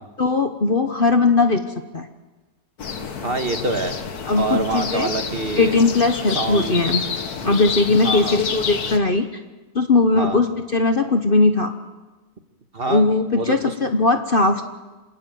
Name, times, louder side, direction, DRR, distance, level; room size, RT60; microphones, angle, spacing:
voice 1, 0.2-1.6 1.9-2.1 4.3-5.1 5.6-7.0 7.4-9.2 9.7-11.7 12.9-14.6, left 3 dB, 40° left, 6 dB, 1.1 m, -19 dB
sound 1, 2.8-9.0, left 6 dB, 70° left, 1.9 m, -29 dB
voice 2, 3.2-3.9 4.3-5.8 6.3-6.8 7.4-7.7 8.0-8.4 10.2-10.4 12.7-13.1 13.3-13.7, right 3 dB, 35° right, 6 dB, 1.6 m, -26 dB
27.0 x 13.5 x 9.3 m, 1.2 s
omnidirectional pair, 1.7 m